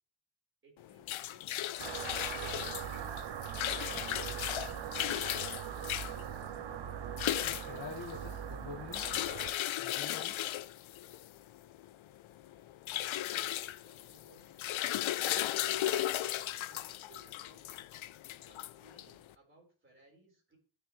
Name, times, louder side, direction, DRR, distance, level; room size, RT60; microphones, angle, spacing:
voice 1, 0.6-2.8 13.4-16.2 16.7-17.9 18.4-20.6, right 1 dB, 25° right, -2 dB, 4.2 m, -63 dB
sound 1, 0.8-19.3, left 13 dB, 75° left, 0.6 m, -36 dB
sound 2, 1.8-9.5, right 9 dB, 65° right, 0.8 m, -41 dB
voice 2, 7.4-9.0 9.8-10.4, left 5 dB, 45° left, 0 dB, 1.6 m, -46 dB
16.0 x 6.8 x 3.2 m, 0.39 s
wide cardioid pair, 170°, 48 cm